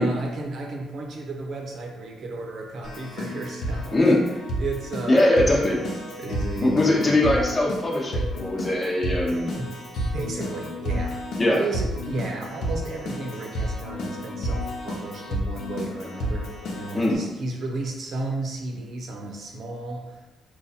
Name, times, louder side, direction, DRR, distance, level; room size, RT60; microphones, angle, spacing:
voice 1, 0.0-4.0 4.6-5.9 6.2-7.4 9.5-9.7 10.1-11.2 11.6-20.2, right 2 dB, 60° right, 1 dB, 0.9 m, -33 dB
Keyboard (musical), 2.8-17.2, equal, 70° left, 0.9 m, -31 dB
voice 2, 3.9-4.2 5.1-5.8 6.6-9.5 11.4-11.6 16.9-17.2, left 1 dB, 25° left, -2 dB, 1.0 m, -21 dB
3.9 x 2.5 x 4.2 m, 1.1 s
cardioid pair, 90°, 0 cm